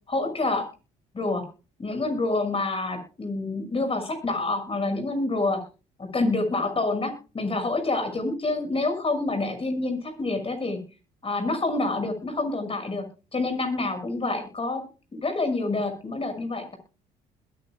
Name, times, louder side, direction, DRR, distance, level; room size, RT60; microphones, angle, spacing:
voice 1, 0.1-0.6 1.1-1.4 1.8-5.6 6.1-10.8 11.2-13.0 13.3-14.8 15.1-16.8, left 2 dB, 30° left, 7 dB, 6.4 m, -27 dB
21.0 x 10.0 x 2.3 m, 0.32 s
supercardioid pair, 70°, 18 cm